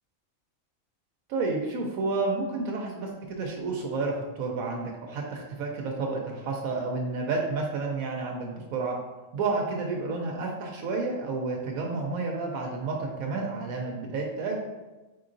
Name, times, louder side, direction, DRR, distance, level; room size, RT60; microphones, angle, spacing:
voice 1, 1.3-8.9 9.3-14.6, right 3 dB, 90° right, 0 dB, 1.1 m, -30 dB
4.3 x 3.8 x 2.5 m, 1.2 s
omnidirectional pair, 1.4 m